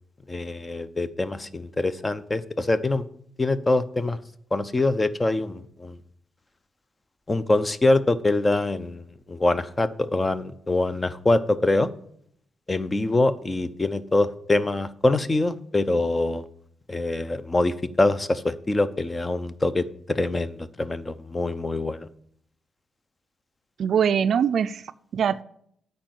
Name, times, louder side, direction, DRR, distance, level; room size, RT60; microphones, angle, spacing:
voice 1, 0.3-3.0 3.4-4.2 4.5-6.0 7.3-11.9 12.7-16.4 16.9-22.1, left 2 dB, 20° left, 14 dB, 0.7 m, -24 dB
voice 2, 23.8-25.4, right 8 dB, 65° right, 13 dB, 0.3 m, -23 dB
8.9 x 5.3 x 7.6 m, 0.67 s
cardioid pair, 100°, 0 cm